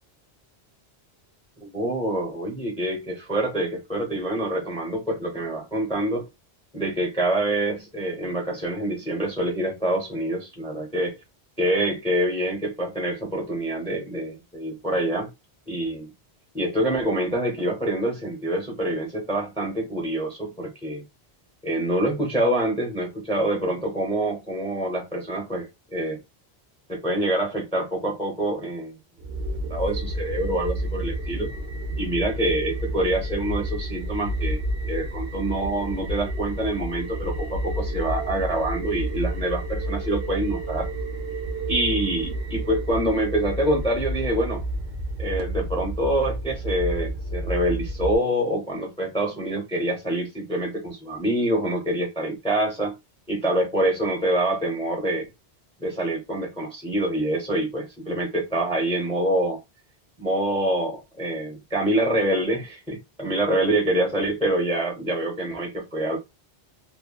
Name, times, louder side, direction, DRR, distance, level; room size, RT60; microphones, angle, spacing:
voice 1, 1.6-6.2 6.7-11.2 11.6-15.3 15.7-16.1 16.5-21.0 21.6-26.2 26.9-29.0 29.7-31.5 32.0-34.6 34.9-40.9 41.7-44.6 45.2-52.9 53.3-55.3 55.8-59.6 60.2-66.2, right 1 dB, 5° left, 0.7 m, -26 dB
sound 1, 29.2-48.2, right 1 dB, 65° right, 0.9 m, -30 dB
2.9 x 2.2 x 2.3 m
omnidirectional pair, 1.1 m